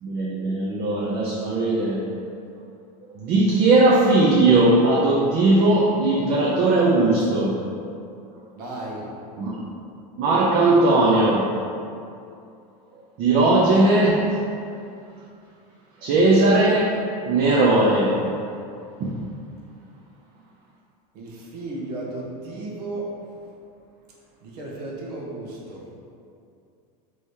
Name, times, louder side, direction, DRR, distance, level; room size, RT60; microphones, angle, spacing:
voice 1, 0.0-2.0 3.2-7.6 9.4-9.5 10.2-11.5 13.2-14.4 16.0-16.9 17.3-18.2 19.0-19.1, right 2 dB, 50° right, -4 dB, 0.7 m, -18 dB
voice 2, 8.5-9.0 21.1-23.1 24.4-25.8, right 2 dB, 80° right, -4 dB, 1.1 m, -34 dB
3.4 x 3.1 x 4.3 m, 2.5 s
hypercardioid pair, 100°, 20 cm